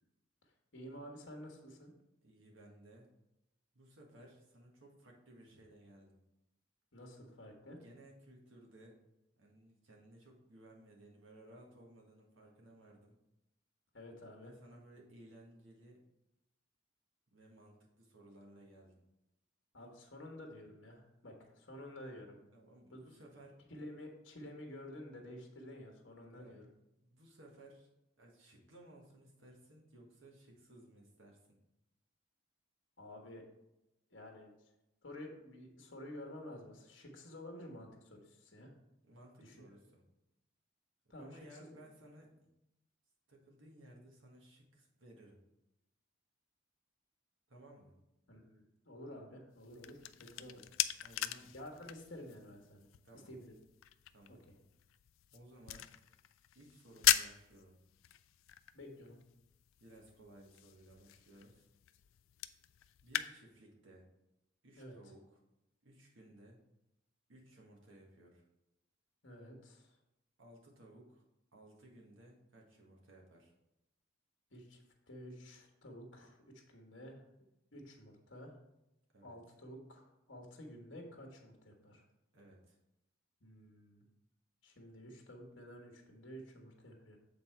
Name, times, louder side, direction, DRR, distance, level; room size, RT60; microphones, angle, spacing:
voice 1, 0.7-1.9 6.9-7.8 13.9-14.5 19.7-22.4 22.9-23.2 23.7-26.7 33.0-33.4 34.1-34.5 35.0-38.7 39.4-39.5 41.1-41.3 41.6-41.8 48.3-50.6 51.5-52.9 53.3-53.6 54.3-54.5 58.7-59.2 64.8-65.0 69.2-70.0 74.5-77.2 77.7-78.6 79.2-82.0 83.4-84.0 84.6-87.2, left 1 dB, 65° left, 2 dB, 1.4 m, -51 dB
voice 2, 2.2-3.1 3.7-6.2 7.7-9.0 9.4-13.2 14.4-16.0 17.3-19.0 22.5-23.6 26.3-26.6 27.0-27.9 28.2-31.6 39.0-40.0 41.0-42.5 43.3-45.4 47.5-47.9 50.3-50.6 51.0-51.5 53.0-53.3 54.1-54.4 55.3-55.9 56.5-57.8 59.8-61.6 63.0-64.1 64.6-65.4 65.8-66.6 67.3-68.4 70.4-71.2 71.5-73.5 77.7-77.8 79.1-79.3 82.3-82.8, right 1 dB, 75° right, -1 dB, 1.7 m, -59 dB
sound 1, 49.5-63.3, left 13 dB, 85° left, 0.4 m, -40 dB
7.9 x 4.0 x 4.5 m, 0.90 s
head